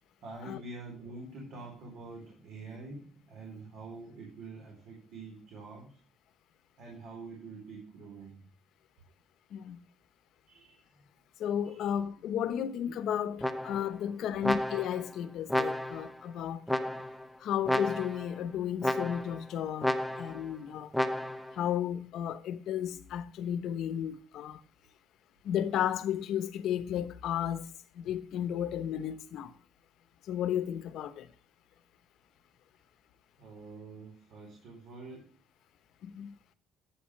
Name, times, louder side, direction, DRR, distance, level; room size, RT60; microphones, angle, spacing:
voice 1, 0.2-5.9 6.8-8.4 10.5-10.8 11.6-11.9 14.2-14.3 33.4-35.3, right 3 dB, 65° right, 4.1 m, -46 dB
voice 2, 11.4-16.6 17.4-20.9 21.5-24.6 25.4-27.7 27.9-29.5 30.3-31.3 36.0-36.4, left 9 dB, 65° left, 1.0 m, -33 dB
sound 1, 13.4-14.0 14.4-15.1 15.5-16.1 16.7-17.3 17.7-18.3 18.8-19.4 19.8-20.4 20.9-21.5, left 1 dB, ahead, 0.7 m, -32 dB
11.5 x 8.7 x 3.2 m
cardioid pair, 155°, 0 cm